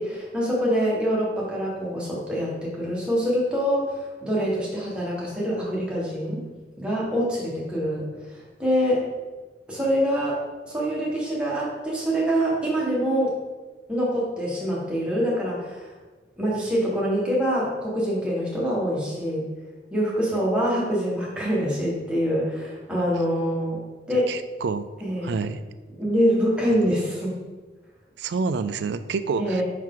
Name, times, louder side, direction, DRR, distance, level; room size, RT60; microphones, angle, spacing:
voice 1, 0.0-6.4 6.8-8.0 8.3-9.0 9.7-13.3 13.9-15.9 16.4-19.4 19.9-23.8 24.1-24.3 25.0-25.4 25.9-27.4 29.4-29.6, equal, 5° right, -6 dB, 1.5 m, -25 dB
voice 2, 24.3-24.8 25.2-25.6 28.2-29.6, right 4 dB, 70° right, 12 dB, 0.4 m, -27 dB
5.7 x 4.7 x 3.8 m, 1.3 s
head